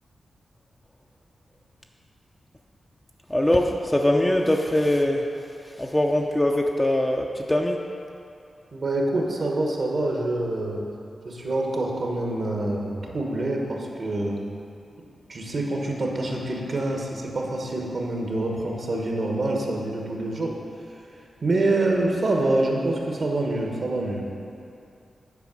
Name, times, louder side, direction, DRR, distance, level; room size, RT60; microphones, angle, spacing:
voice 1, 3.3-5.3 5.8-7.8, left 1 dB, 15° left, 1 dB, 0.5 m, -22 dB
voice 2, 8.7-10.8 11.2-14.4 15.3-20.6 21.4-24.2, right 2 dB, 60° right, 0 dB, 1.3 m, -26 dB
8.3 x 4.7 x 6.1 m, 2.6 s
cardioid pair, 70°, 0 cm